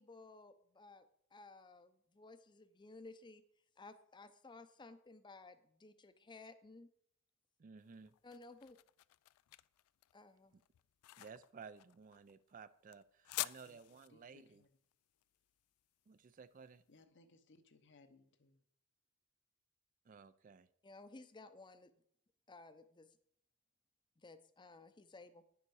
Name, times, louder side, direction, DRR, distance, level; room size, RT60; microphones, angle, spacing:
voice 1, 0.0-6.9 8.2-8.8 10.1-10.6 20.8-21.9 22.5-23.2 24.2-25.4, left 3 dB, 20° left, 0.6 m, -57 dB
voice 2, 7.6-8.1 11.2-14.6 16.1-16.8 20.1-20.7, right 5 dB, 35° right, 0.4 m, -56 dB
sound 1, 7.8-16.8, left 18 dB, 85° left, 0.3 m, -49 dB
voice 3, 14.1-14.7 16.9-18.6, left 3 dB, 55° left, 0.8 m, -66 dB
9.7 x 6.9 x 4.7 m
head